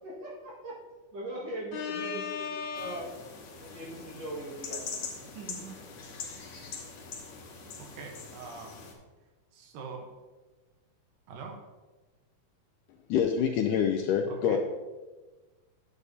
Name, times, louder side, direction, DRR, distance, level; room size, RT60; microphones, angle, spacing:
voice 1, 0.0-0.8 1.1-3.1 3.6-5.7, right 1 dB, 50° right, -4 dB, 2.6 m, -40 dB
voice 2, 1.7-3.0 13.1-14.6, left 8 dB, 80° left, 3 dB, 1.9 m, -28 dB
sound 1, 2.8-8.9, left 5 dB, 60° left, 2.4 m, -43 dB
voice 3, 7.8-8.7 9.5-10.1 11.3-11.6 14.3-14.6, right 5 dB, 75° right, 2 dB, 2.7 m, -43 dB
10.0 x 9.5 x 2.8 m, 1.2 s
omnidirectional pair, 4.2 m